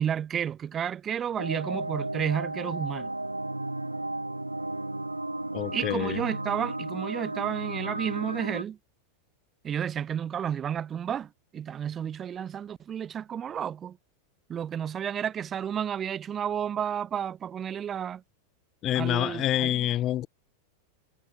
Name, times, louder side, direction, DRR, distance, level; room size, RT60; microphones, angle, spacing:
voice 1, 0.0-3.1 5.7-8.8 9.6-14.0 14.5-18.2 18.9-19.8, right 8 dB, 25° right, 0.4 m, -31 dB
sound 1, 1.4-8.6, right 2 dB, 85° right, 0.5 m, -34 dB
voice 2, 5.5-6.2 18.8-20.3, left 13 dB, 30° left, 0.6 m, -27 dB
figure-of-eight pair, 90°, 0 cm